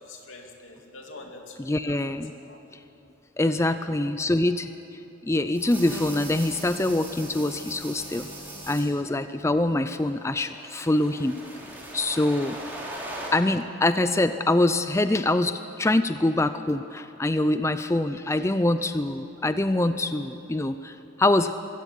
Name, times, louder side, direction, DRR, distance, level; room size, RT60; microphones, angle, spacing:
voice 1, 0.0-1.6 1.8-2.1 2.5-2.6 3.4-3.8 4.0-4.1, left 3 dB, 85° left, 2 dB, 2.8 m, -45 dB
voice 2, 1.6-2.3 3.4-4.7 5.3-8.3 8.7-11.4 11.9-12.6 13.3-21.5, left 2 dB, 15° left, 11 dB, 0.4 m, -24 dB
sound 1, 5.5-8.8 9.9-13.3, right 1 dB, 10° right, 3.7 m, -39 dB
22.5 x 16.0 x 8.4 m, 2.8 s
head